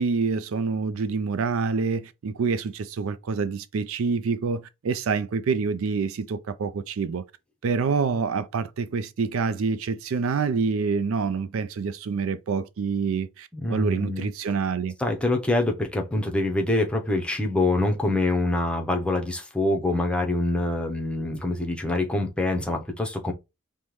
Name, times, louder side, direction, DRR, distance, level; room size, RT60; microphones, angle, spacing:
voice 1, 0.0-7.2 7.6-14.9, right 5 dB, 65° right, 0.4 m, -27 dB
voice 2, 13.5-14.3 15.0-23.3, left 2 dB, 5° left, 0.7 m, -25 dB
5.4 x 2.1 x 3.1 m
head